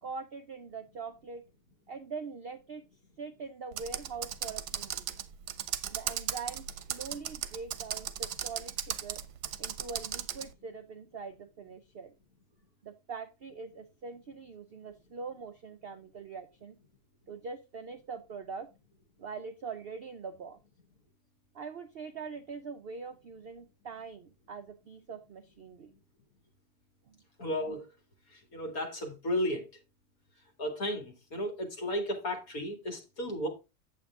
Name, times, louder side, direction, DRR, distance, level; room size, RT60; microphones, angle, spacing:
voice 1, 0.0-1.4 1.9-2.8 3.2-5.1 5.9-9.2 9.6-12.1 12.8-16.8 17.3-18.7 19.2-20.6 21.5-25.9 27.1-27.2, right 5 dB, 65° right, 0.6 m, -43 dB
Computer keyboard, 3.7-10.5, right 10 dB, 85° right, 1.3 m, -36 dB
voice 2, 27.4-27.9 28.3-29.7 30.6-33.5, equal, 60° left, 2.6 m, -34 dB
8.5 x 7.5 x 3.5 m
omnidirectional pair, 1.7 m